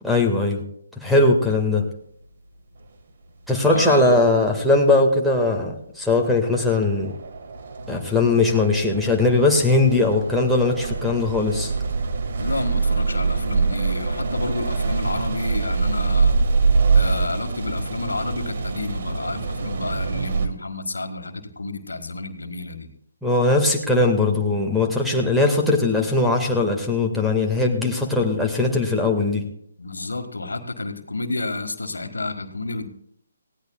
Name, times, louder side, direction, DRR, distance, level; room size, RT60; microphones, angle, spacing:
voice 1, 0.0-0.6 1.0-1.8 3.5-7.1 7.9-11.7 23.2-29.4, left 2 dB, ahead, 0 dB, 1.7 m, -20 dB
sound 1, 2.8-2.9 6.2-6.3 6.6-20.5, right 4 dB, 50° right, 1.6 m, -24 dB
voice 2, 3.7-4.1 12.4-16.4 16.9-22.9 29.8-32.9, left 2 dB, 75° left, 7 dB, 1.7 m, -30 dB
19.5 x 16.5 x 2.3 m, 0.71 s
figure-of-eight pair, 145°, 0 cm